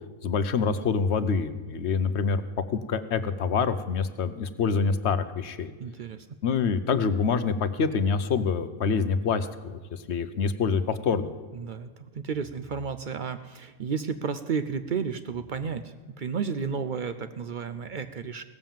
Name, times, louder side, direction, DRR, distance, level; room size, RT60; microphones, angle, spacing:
voice 1, 0.2-2.4 2.7-5.7 6.4-11.3, left 5 dB, 60° left, 12 dB, 0.9 m, -26 dB
voice 2, 5.8-6.3 11.5-18.4, right 6 dB, 60° right, 11 dB, 0.5 m, -32 dB
17.0 x 7.5 x 7.2 m, 1.4 s
omnidirectional pair, 1.4 m